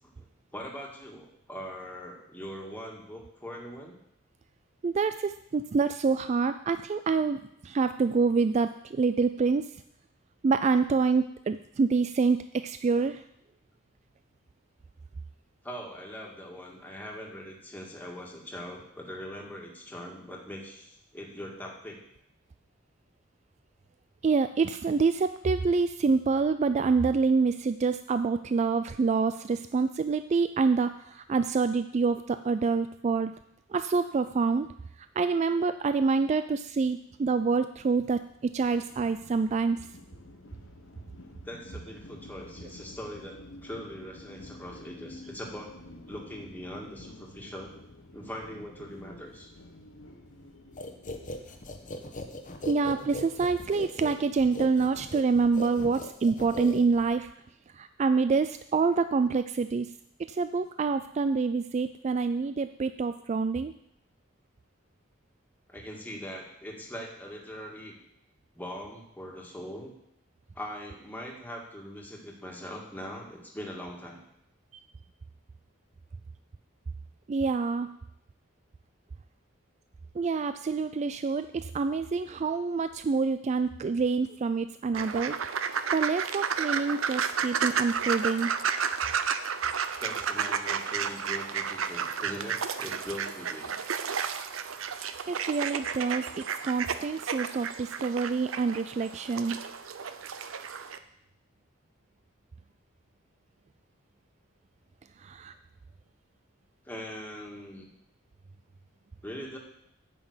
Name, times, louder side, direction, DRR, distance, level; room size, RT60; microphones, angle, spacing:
voice 1, 0.5-4.0 15.6-22.0 41.4-45.8 46.1-47.7 48.1-49.5 51.4-51.5 65.7-68.0 68.5-69.9 70.6-74.2 90.0-93.8 106.9-107.9 109.2-109.6, equal, 10° left, -1 dB, 1.9 m, -41 dB
voice 2, 4.8-9.7 10.4-13.2 24.2-33.3 33.7-34.7 35.2-39.8 52.7-57.3 57.7-59.9 60.2-63.7 77.3-77.9 80.2-85.4 85.9-88.5 95.3-99.6 105.2-105.5, right 4 dB, 35° right, 11 dB, 0.3 m, -27 dB
sound 1, 37.1-54.5, left 1 dB, 75° left, 1.1 m, -51 dB
sound 2, 50.8-57.3, left 1 dB, 40° left, 1.1 m, -39 dB
sound 3, 84.9-101.0, right 7 dB, 85° right, 0.7 m, -32 dB
9.1 x 6.0 x 8.0 m, 0.76 s
head